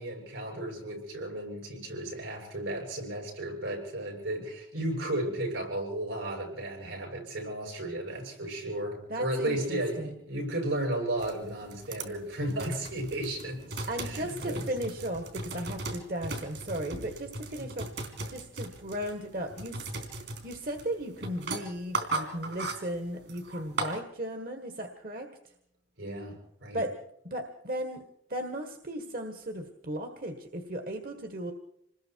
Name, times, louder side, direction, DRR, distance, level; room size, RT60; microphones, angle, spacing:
voice 1, 0.0-14.6 17.6-17.7 26.0-26.8, right 1 dB, 85° right, 1 dB, 7.9 m, -34 dB
voice 2, 9.1-10.1 13.9-17.9 18.2-19.9 20.4-25.3 26.7-26.9 27.2-28.0 28.3-31.5, right 1 dB, 50° right, 5 dB, 1.7 m, -36 dB
sound 1, 11.2-24.0, right 2 dB, 65° right, 3.8 m, -38 dB
27.0 x 20.5 x 4.7 m, 0.73 s
head